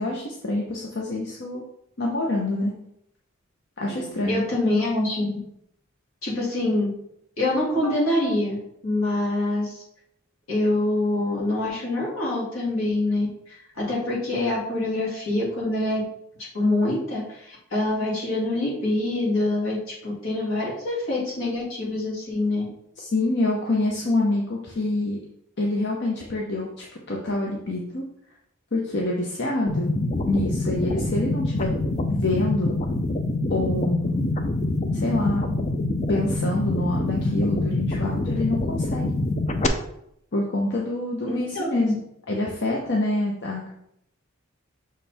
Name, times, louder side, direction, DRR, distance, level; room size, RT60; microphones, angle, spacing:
voice 1, 0.0-1.6 2.0-2.7 3.8-4.4 23.0-25.2 25.6-28.0 28.7-31.7 32.1-32.8 33.5-34.4 34.9-35.4 36.1-39.1 40.3-42.0 42.3-43.7, left 2 dB, 55° left, -1 dB, 0.8 m, -26 dB
voice 2, 3.8-5.4 6.2-6.9 7.4-8.6 8.8-9.8 10.5-16.0 16.5-22.7 41.3-42.0, left 2 dB, 75° left, -5 dB, 2.5 m, -25 dB
sound 1, 29.7-39.7, left 2 dB, 35° left, 0.5 m, -25 dB
6.3 x 4.4 x 3.4 m, 0.76 s
head